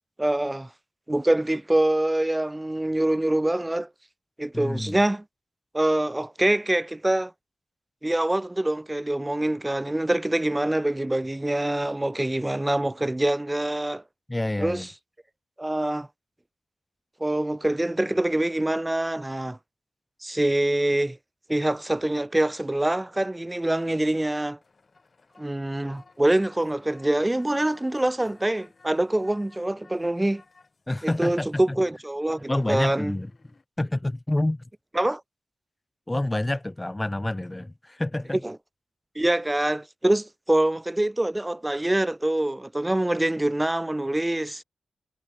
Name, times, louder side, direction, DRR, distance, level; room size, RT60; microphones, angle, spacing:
voice 1, 0.2-0.7 1.1-3.9 4.4-5.2 5.7-7.3 8.0-14.0 14.6-14.9 15.6-16.1 17.2-19.6 20.2-21.2 21.5-24.6 25.4-30.4 31.0-33.2 34.9-35.2 38.4-38.6 39.1-44.6, right 1 dB, 10° right, 0.8 m, -25 dB
voice 2, 4.5-5.0 14.3-14.9 30.9-31.8 32.5-33.3 33.8-34.6 36.1-38.4, left 1 dB, 10° left, 1.4 m, -28 dB
sound 1, 24.6-33.6, left 3 dB, 35° left, 7.3 m, -58 dB
wide cardioid pair, 155°, 0 cm